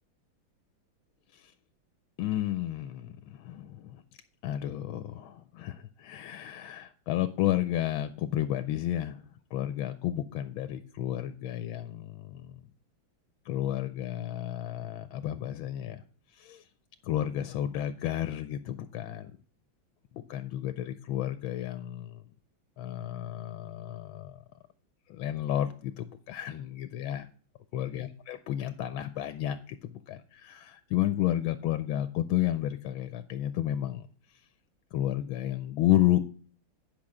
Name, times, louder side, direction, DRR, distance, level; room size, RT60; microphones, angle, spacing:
voice 1, 2.2-4.0 4.4-9.2 9.5-12.6 13.5-16.0 16.3-16.6 17.0-19.3 20.1-22.2 22.8-24.4 25.1-27.3 27.7-34.1 34.9-36.2, left 13 dB, 80° left, 10 dB, 1.4 m, -31 dB
10.5 x 5.9 x 4.9 m, 0.43 s
omnidirectional pair, 2.2 m